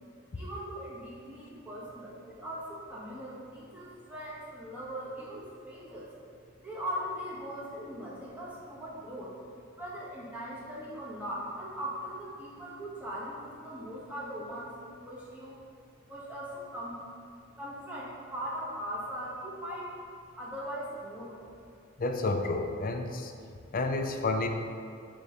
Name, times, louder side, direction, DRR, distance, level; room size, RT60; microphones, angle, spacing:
voice 1, 0.3-6.1 6.6-9.3 9.8-15.5 16.1-17.0 17.6-19.9 20.3-21.5, equal, 10° right, -8 dB, 1.5 m, -40 dB
voice 2, 22.0-23.3 23.7-24.5, left 3 dB, 45° left, 5 dB, 0.5 m, -30 dB
6.5 x 3.2 x 5.6 m, 2.4 s
head